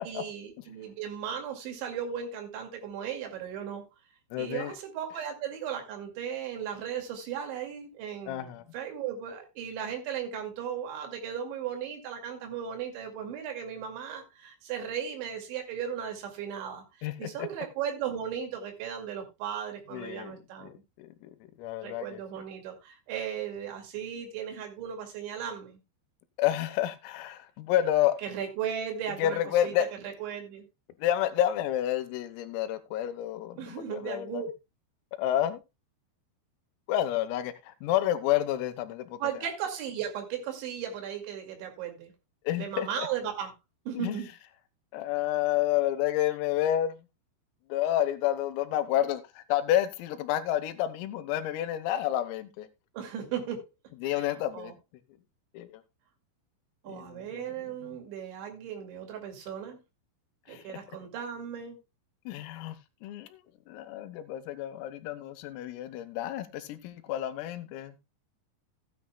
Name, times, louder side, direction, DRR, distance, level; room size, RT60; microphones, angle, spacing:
voice 1, 0.1-3.8 4.4-20.7 21.8-25.8 28.2-29.7 30.0-30.7 33.6-34.5 39.2-42.1 42.6-43.5 43.9-44.3 52.9-53.7 54.0-54.3 54.5-54.7 56.8-59.8 60.5-61.8, right 8 dB, 65° right, 4.4 m, -36 dB
voice 2, 4.3-4.8 8.3-8.6 17.0-17.5 19.9-22.2 26.4-28.2 29.2-29.9 31.0-34.4 35.2-35.6 36.9-39.2 42.5-43.1 44.0-44.2 44.9-47.0 47.7-52.7 54.0-54.7 55.5-55.8 56.9-58.0 60.5-60.6 62.3-63.4 63.7-68.0, left 12 dB, 90° left, 3.7 m, -30 dB
15.5 x 9.8 x 2.2 m
omnidirectional pair, 5.9 m